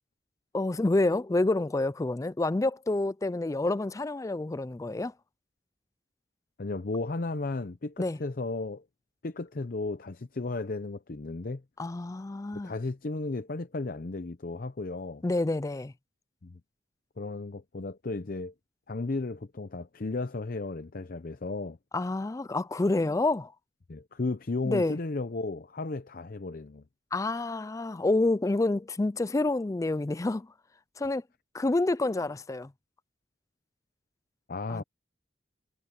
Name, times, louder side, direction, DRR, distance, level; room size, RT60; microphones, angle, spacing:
voice 1, 0.5-5.1 8.0-8.2 11.8-12.7 15.2-15.9 21.9-23.5 24.6-25.0 27.1-30.5 31.0-31.2 31.5-32.7 34.7-34.8, left 2 dB, 15° left, 0.4 m, -28 dB
voice 2, 6.6-8.8 9.2-11.6 12.5-15.2 16.4-16.6 17.2-18.5 18.9-21.8 23.9-26.8 34.5-34.8, left 3 dB, 50° left, 0.7 m, -34 dB
head